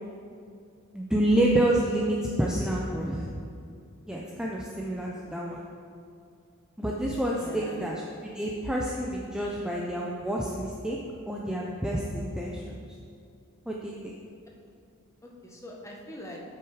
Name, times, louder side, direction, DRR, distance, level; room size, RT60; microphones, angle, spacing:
voice 1, 0.9-3.3 4.1-5.6 6.8-7.9 8.2-11.0 11.3-12.8 13.7-14.2, right 1 dB, 5° right, -3 dB, 0.5 m, -28 dB
voice 2, 5.0-5.4 7.3-8.0 15.2-16.4, left 1 dB, 15° left, -1 dB, 1.1 m, -43 dB
8.2 x 6.1 x 4.8 m, 2.5 s
head